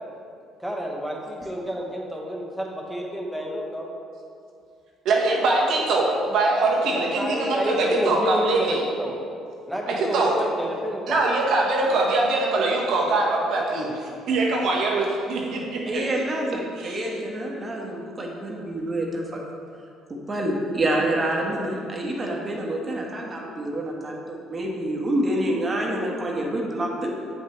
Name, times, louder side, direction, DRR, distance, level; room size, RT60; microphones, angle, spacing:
voice 1, 0.6-3.9 6.9-9.1 9.7-11.2, equal, ahead, -2 dB, 1.4 m, -29 dB
voice 2, 5.0-8.8 9.9-10.3 11.1-16.0 16.8-17.1, right 2 dB, 65° right, -2 dB, 1.3 m, -23 dB
voice 3, 15.8-19.4 20.1-27.1, right 1 dB, 35° right, -1 dB, 1.4 m, -27 dB
7.9 x 5.7 x 3.2 m, 2.4 s
hypercardioid pair, 60°, 0 cm